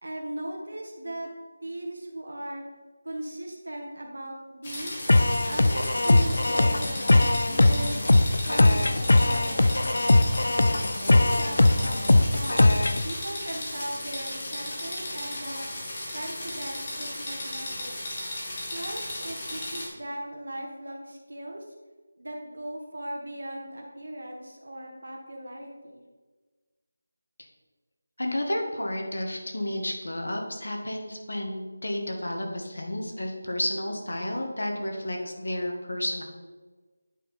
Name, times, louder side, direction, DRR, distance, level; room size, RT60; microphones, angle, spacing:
voice 1, 0.0-1.3 1.6-2.6 3.0-5.0 5.4-8.0 8.4-10.2 11.0-12.7 13.0-15.7 16.1-18.0 18.7-21.6 22.1-26.0, right 1 dB, 85° right, 0 dB, 1.4 m, -38 dB
sound 1, 4.6-19.9, left 1 dB, 35° left, 2.0 m, -35 dB
sound 2, 5.1-13.1, left 2 dB, 70° left, 0.4 m, -20 dB
voice 2, 28.2-36.2, left 1 dB, 85° left, 1 dB, 1.5 m, -31 dB
9.0 x 4.5 x 4.1 m, 1.3 s
figure-of-eight pair, 170°, 0 cm